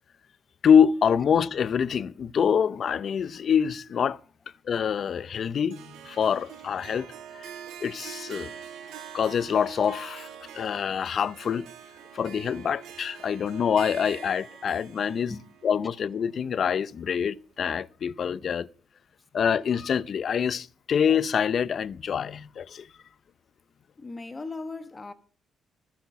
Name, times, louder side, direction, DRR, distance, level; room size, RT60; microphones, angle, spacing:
voice 1, 0.6-4.2 4.7-7.1 7.3-7.5 7.8-8.5 9.1-10.3 10.5-11.7 12.1-15.3 15.6-18.7 19.3-22.9, left 7 dB, 55° left, 0.5 m, -25 dB
Harp, 5.7-16.9, right 9 dB, 85° right, 1.4 m, -45 dB
voice 2, 24.0-25.1, left 3 dB, 25° left, 1.0 m, -37 dB
14.5 x 5.9 x 7.0 m
cardioid pair, 90°, 0 cm